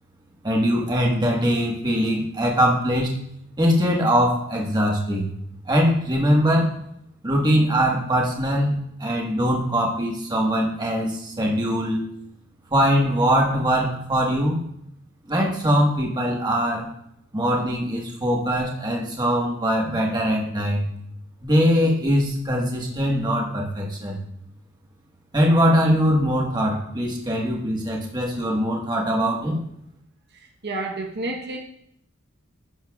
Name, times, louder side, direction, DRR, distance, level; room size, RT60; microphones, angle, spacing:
voice 1, 0.4-3.2 3.6-5.3 5.7-6.7 7.2-12.0 12.7-14.6 15.3-16.9 17.3-20.8 21.4-24.2 25.3-29.6, equal, 20° right, -1 dB, 1.4 m, -22 dB
voice 2, 30.6-31.6, right 2 dB, 50° right, 0 dB, 1.0 m, -29 dB
11.0 x 10.0 x 2.4 m, 0.75 s
head